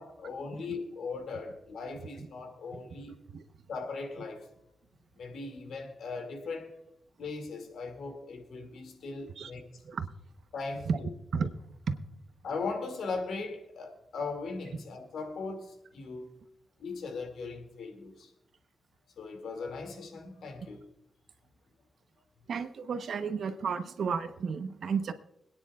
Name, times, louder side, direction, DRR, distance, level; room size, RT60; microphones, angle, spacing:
voice 1, 0.0-3.2 3.7-4.5 5.1-6.8 7.2-9.7 10.5-11.1 12.4-16.3 16.8-18.3 19.2-20.9, left 4 dB, 85° left, 2.4 m, -39 dB
voice 2, 22.5-25.1, right 5 dB, 75° right, 1.0 m, -32 dB
26.0 x 9.8 x 2.4 m
cardioid pair, 95°, 0 cm